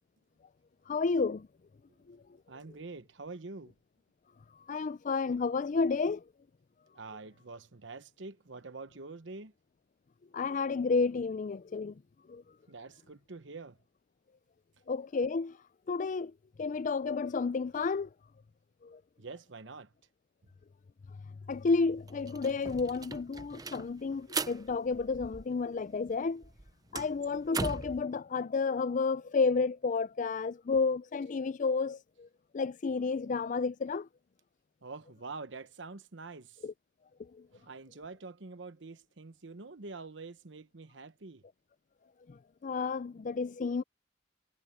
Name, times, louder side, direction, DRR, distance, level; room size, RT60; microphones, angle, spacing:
voice 1, 0.9-1.5 2.1-2.2 4.7-6.2 10.3-12.0 12.3-12.4 14.9-15.6 15.9-16.3 16.6-18.1 18.8-19.0 21.5-26.4 26.9-32.3 32.5-34.1 36.6-36.7 37.2-37.5 42.3-43.8, left 4 dB, 40° left, 0.4 m, -31 dB
voice 2, 2.5-3.7 6.9-9.5 12.7-13.8 19.2-19.9 34.8-36.6 37.5-41.4, right 3 dB, 65° right, 1.0 m, -46 dB
sound 1, 21.5-21.6 21.9-25.8 26.1-28.0, right 4 dB, 20° right, 0.6 m, -39 dB
head